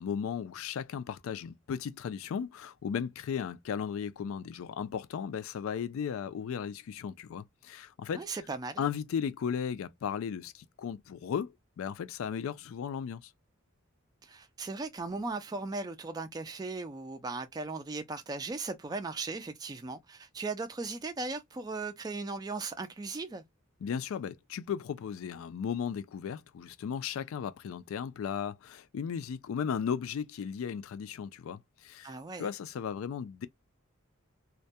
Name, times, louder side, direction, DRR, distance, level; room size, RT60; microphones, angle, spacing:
voice 1, 0.0-8.2 8.8-13.3 23.8-33.5, left 7 dB, 70° left, 0.3 m, -36 dB
voice 2, 8.1-8.8 14.2-23.4 32.0-32.5, right 3 dB, 20° right, 0.3 m, -37 dB
2.2 x 2.1 x 2.6 m
head